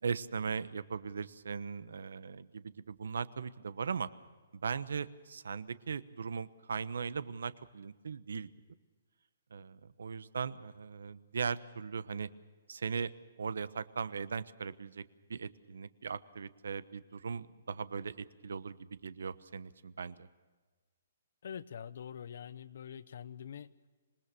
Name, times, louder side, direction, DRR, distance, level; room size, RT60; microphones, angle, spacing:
voice 1, 0.0-4.1 4.5-8.5 9.5-12.3 12.7-13.1 13.4-15.0 15.3-20.3, right 5 dB, 85° right, 16 dB, 1.1 m, -39 dB
voice 2, 21.4-23.7, left 8 dB, 50° left, 17 dB, 0.7 m, -45 dB
26.5 x 20.5 x 6.8 m, 1.3 s
hypercardioid pair, 175°, 0 cm